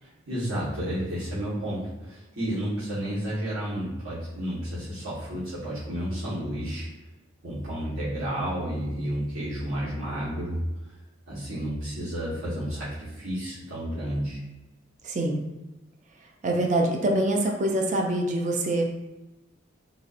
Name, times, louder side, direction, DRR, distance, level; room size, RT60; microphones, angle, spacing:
voice 1, 0.0-6.9 7.4-10.6 11.3-14.4, equal, 75° right, -12 dB, 1.4 m, -31 dB
voice 2, 15.0-15.4 16.4-18.9, right 1 dB, 35° right, 2 dB, 0.3 m, -25 dB
3.9 x 2.6 x 2.5 m, 1.0 s
head